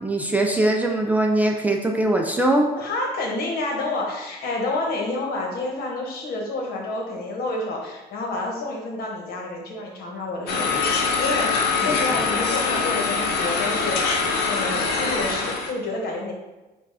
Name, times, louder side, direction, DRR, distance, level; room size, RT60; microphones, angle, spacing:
voice 1, 0.0-2.7 11.8-12.0, right 1 dB, 10° right, 1 dB, 0.4 m, -21 dB
voice 2, 2.8-16.3, left 2 dB, 65° left, 0 dB, 1.2 m, -29 dB
sound 1, 10.5-15.7, left 4 dB, 80° left, 0.8 m, -23 dB
4.5 x 2.4 x 4.8 m, 1.1 s
cardioid pair, 110°, 17 cm